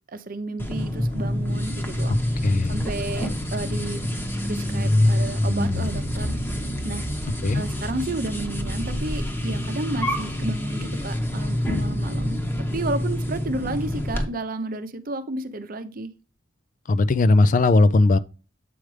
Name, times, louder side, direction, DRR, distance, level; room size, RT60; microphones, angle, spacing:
voice 1, 0.1-2.4 2.7-4.0 4.4-6.4 6.8-7.1 7.5-12.4 12.7-16.1, right 2 dB, 45° right, 0.7 m, -32 dB
sound 1, 0.6-14.2, left 1 dB, 10° left, 1.0 m, -26 dB
voice 2, 2.4-2.7 7.4-7.6 16.9-18.2, left 2 dB, 40° left, 0.4 m, -18 dB
7.8 x 4.9 x 3.2 m
head